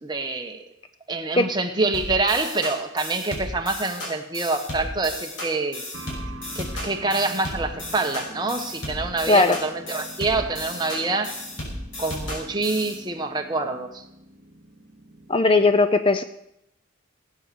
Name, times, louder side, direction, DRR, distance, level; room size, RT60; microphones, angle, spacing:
voice 1, 0.0-0.6 1.1-5.8 6.5-11.4 12.0-14.0, right 3 dB, 20° right, 4 dB, 1.2 m, -26 dB
sound 1, 1.9-13.0, left 1 dB, 70° left, 5.7 m, -34 dB
sound 2, 5.9-15.4, right 1 dB, 65° right, 1.4 m, -45 dB
voice 2, 9.3-9.6 15.3-16.2, left 3 dB, 25° left, 10 dB, 0.5 m, -18 dB
17.0 x 9.0 x 6.9 m, 0.82 s
head